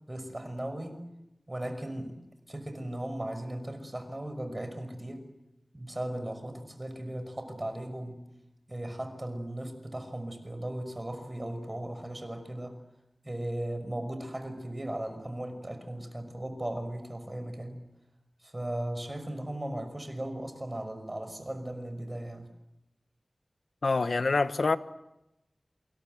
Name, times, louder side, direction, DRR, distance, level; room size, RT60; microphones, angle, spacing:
voice 1, 0.1-1.0 1.5-2.2 2.5-5.3 5.7-8.3 8.7-12.8 13.2-17.9 18.4-22.5, right 1 dB, 25° right, 5.8 m, -37 dB
voice 2, 23.8-24.8, left 3 dB, 80° left, 1.2 m, -26 dB
27.5 x 26.5 x 8.0 m
wide cardioid pair, 65°, 0 cm